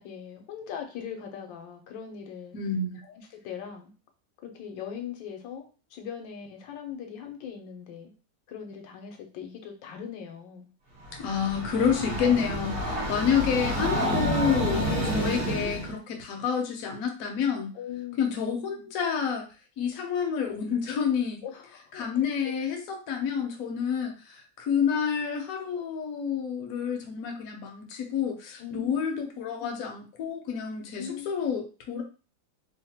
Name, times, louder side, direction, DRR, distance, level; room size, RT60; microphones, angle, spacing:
voice 1, 0.0-2.6 3.0-3.9 4.4-8.1 8.5-10.7 17.7-18.4 21.4-22.5 28.6-29.0 29.6-29.8 31.0-31.3, left 8 dB, 85° left, 4 dB, 1.3 m, -40 dB
voice 2, 2.5-3.0 11.2-17.7 18.2-19.5 19.8-21.4 22.0-32.0, left 7 dB, 65° left, 3 dB, 0.9 m, -29 dB
Train, 11.0-15.9, equal, 40° right, 0.8 m, -29 dB
3.1 x 2.1 x 2.8 m, 0.35 s
omnidirectional pair, 2.0 m